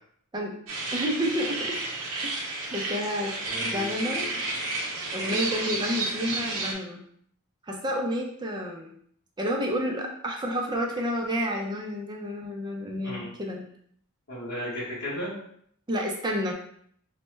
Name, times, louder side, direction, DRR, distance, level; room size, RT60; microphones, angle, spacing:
sound 1, 0.7-6.7, right 2 dB, 80° right, 0.7 m, -31 dB
voice 1, 0.9-1.8 2.2-3.3 3.6-4.3 5.1-7.0 7.7-8.9 9.4-13.6 15.9-16.5, equal, 20° right, 0 dB, 0.5 m, -30 dB
voice 2, 3.4-4.4 5.3-5.9 13.0-13.3 14.3-15.4, equal, 50° left, -8 dB, 1.1 m, -36 dB
3.2 x 2.1 x 3.1 m, 0.65 s
head